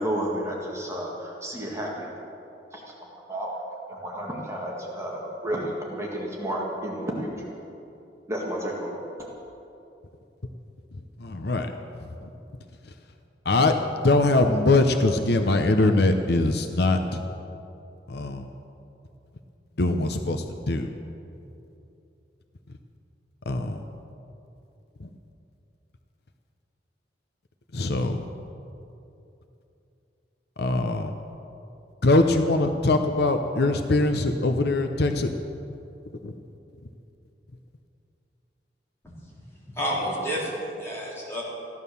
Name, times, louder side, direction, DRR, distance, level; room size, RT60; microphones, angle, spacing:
voice 1, 0.0-2.1 2.7-3.5 3.9-7.5 8.3-9.0, right 1 dB, 15° right, -3 dB, 1.8 m, -31 dB
voice 2, 10.9-11.7 12.2-12.3 13.4-17.2 18.1-18.5 19.8-20.9 23.5-23.8 25.0-25.1 27.7-28.3 30.6-31.1 32.0-35.3 36.2-36.3, left 2 dB, 65° left, 6 dB, 0.8 m, -22 dB
voice 3, 39.7-41.4, equal, 15° left, -7 dB, 4.1 m, -30 dB
15.5 x 11.0 x 6.9 m, 2.8 s
head